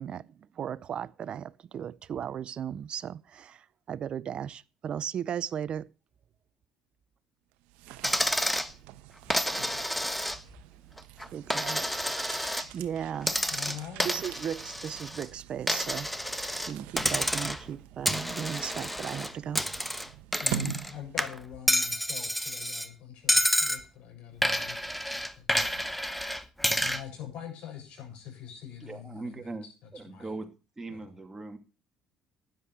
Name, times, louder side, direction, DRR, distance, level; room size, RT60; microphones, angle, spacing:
voice 1, 0.0-5.9 11.3-11.9 12.7-13.8 14.0-16.4 16.7-19.6, right 9 dB, 50° right, 0.6 m, -36 dB
sound 1, 7.5-21.6, right 14 dB, 80° right, 1.0 m, -44 dB
Coin (dropping), 8.0-8.7 9.3-10.6 11.0-12.7 13.2-15.3 15.7-16.7 17.0-17.7 18.1-20.9 21.2-22.9 23.3-23.8 24.4-27.0, equal, 5° left, 1.3 m, -29 dB
voice 2, 13.4-14.1 20.4-25.8 26.8-30.3 30.9-31.1, left 10 dB, 65° left, 7.5 m, -44 dB
voice 3, 28.8-29.7 29.9-31.6, right 2 dB, 20° right, 2.8 m, -40 dB
12.5 x 10.5 x 4.8 m
hypercardioid pair, 65°, 2 cm